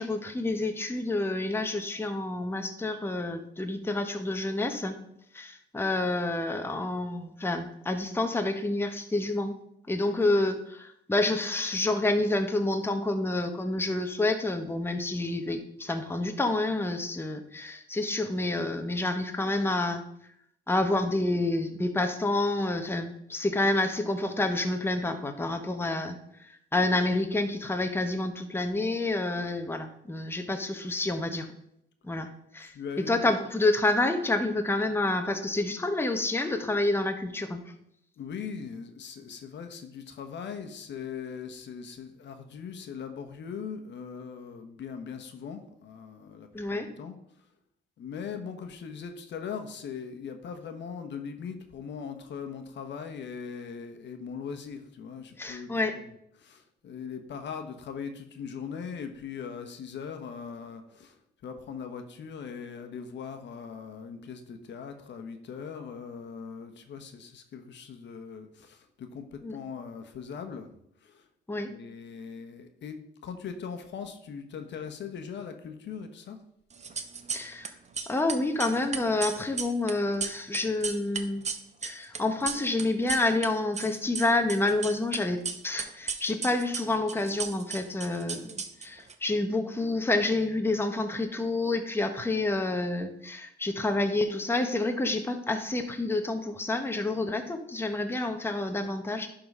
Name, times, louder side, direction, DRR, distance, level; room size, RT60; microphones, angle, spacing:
voice 1, 0.0-5.0 5.3-9.6 9.9-20.0 20.7-26.2 26.7-31.5 32.0-32.3 32.5-32.7 33.1-37.6 46.5-46.9 55.4-56.0 69.4-69.6 71.5-71.7 77.3-77.7 78.1-81.4 81.8-88.5 88.8-99.3, left 2 dB, 10° left, 6 dB, 1.0 m, -28 dB
voice 2, 32.6-33.3 38.2-47.2 48.0-56.1 56.4-61.2 61.4-71.2 71.7-76.4, left 6 dB, 65° left, 6 dB, 1.1 m, -40 dB
sound 1, 76.7-77.7 77.9-83.5 83.7-85.2 85.4-89.1, right 5 dB, 35° right, 0.9 m, -35 dB
11.0 x 3.9 x 5.4 m, 0.75 s
cardioid pair, 90°, 20 cm